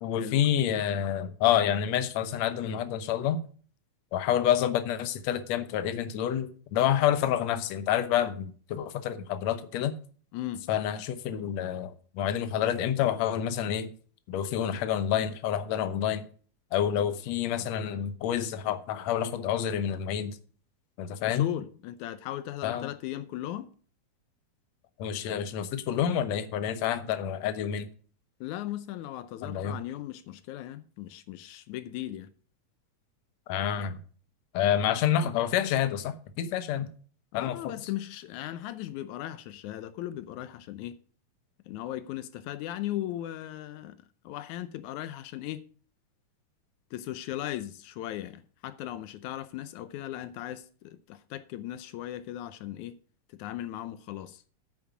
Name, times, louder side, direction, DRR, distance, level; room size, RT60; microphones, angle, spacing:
voice 1, 0.0-3.4 4.1-10.0 10.7-13.9 14.3-16.2 16.7-20.4 21.0-21.5 22.6-22.9 25.0-27.9 29.4-29.8 33.5-34.0 34.5-36.9 37.3-37.7, left 10 dB, 70° left, 2.1 m, -28 dB
voice 2, 10.3-10.7 21.2-23.7 28.4-32.3 37.3-41.0 41.7-45.6 46.9-53.0 53.3-54.5, left 13 dB, 85° left, 2.1 m, -37 dB
9.6 x 8.6 x 4.9 m
omnidirectional pair, 3.3 m